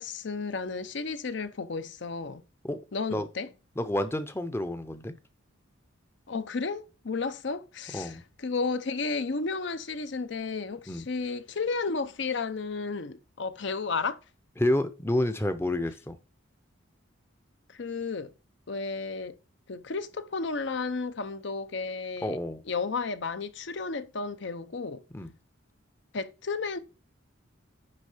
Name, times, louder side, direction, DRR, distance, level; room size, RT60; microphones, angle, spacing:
voice 1, 0.0-2.4 2.9-3.5 6.3-14.2 17.7-18.3 18.7-19.4 19.7-22.4 22.7-25.0 26.1-26.8, left 4 dB, 60° left, 0.6 m, -33 dB
voice 2, 3.8-5.1 7.9-8.2 10.9-11.1 14.6-16.2 22.2-22.6 25.1-25.3, left 1 dB, 10° left, 0.6 m, -29 dB
9.7 x 3.7 x 4.9 m
head